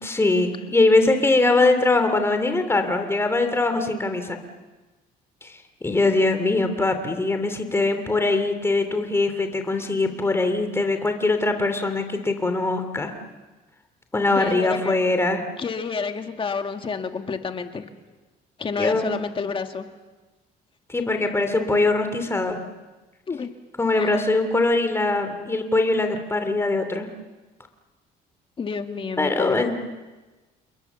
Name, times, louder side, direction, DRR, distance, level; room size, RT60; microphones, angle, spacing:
voice 1, 0.0-4.4 5.4-13.1 14.1-15.4 18.8-19.0 20.9-22.6 23.8-27.1 29.2-29.7, left 2 dB, 15° left, 7 dB, 2.9 m, -22 dB
voice 2, 14.4-15.0 15.6-17.8 18.6-19.9 23.3-23.5 23.9-24.2 28.6-29.7, left 5 dB, 30° left, 6 dB, 2.0 m, -29 dB
29.0 x 21.5 x 7.1 m, 1.2 s
cardioid pair, 110°, 17 cm